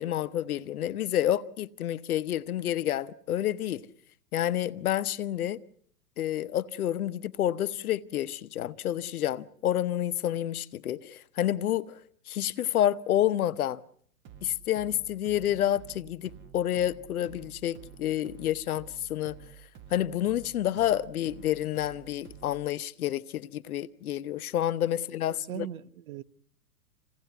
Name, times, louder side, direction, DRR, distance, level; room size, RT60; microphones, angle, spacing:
voice 1, 0.0-3.9 4.3-5.6 6.2-12.0 12.3-13.8 14.4-19.4 19.9-25.7, left 12 dB, 70° left, 1.0 m, -29 dB
sound 1, 14.2-22.7, right 9 dB, 25° right, 1.3 m, -51 dB
voice 2, 25.3-26.2, right 11 dB, 65° right, 1.1 m, -39 dB
27.0 x 17.5 x 8.1 m
hypercardioid pair, 130°, 46 cm